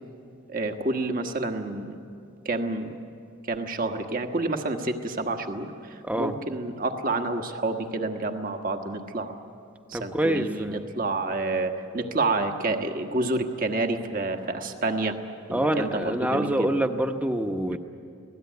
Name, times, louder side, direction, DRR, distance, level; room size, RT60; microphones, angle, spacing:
voice 1, 0.5-2.0 2.4-2.9 3.5-9.3 9.9-15.2 15.5-16.7, right 2 dB, 40° right, 5 dB, 1.4 m, -29 dB
voice 2, 6.0-6.3 9.9-10.8 15.5-17.8, right 1 dB, 5° right, 6 dB, 1.0 m, -26 dB
25.5 x 17.5 x 9.3 m, 2.5 s
head